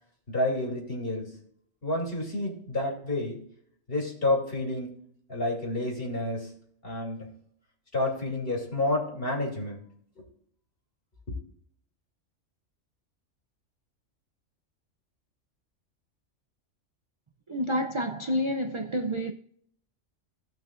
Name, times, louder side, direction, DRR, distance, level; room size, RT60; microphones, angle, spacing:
voice 1, 0.3-1.3 1.8-3.4 3.9-4.9 5.3-6.5 6.8-7.3 7.9-9.8 10.2-10.3, left 2 dB, 45° left, 3.0 m, -29 dB
voice 2, 17.5-19.3, equal, 45° right, 0.4 m, -29 dB
17.5 x 5.9 x 2.5 m
omnidirectional pair, 1.3 m